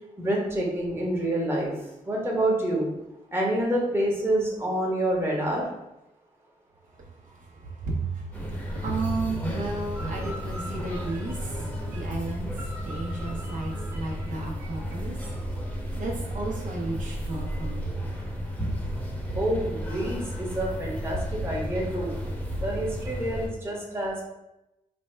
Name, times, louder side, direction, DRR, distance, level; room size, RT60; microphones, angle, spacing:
voice 1, 0.2-1.7 2.1-2.9 3.3-5.6 10.0-11.0 12.6-14.0 19.3-22.1 22.6-24.2, right 1 dB, 15° right, -3 dB, 1.0 m, -28 dB
voice 2, 7.0-15.3 16.0-18.0, right 3 dB, 60° right, -1 dB, 0.7 m, -34 dB
sound 1, 8.3-23.5, equal, 10° left, 0.9 m, -33 dB
3.4 x 2.2 x 4.3 m, 0.91 s
cardioid pair, 100°, 15 cm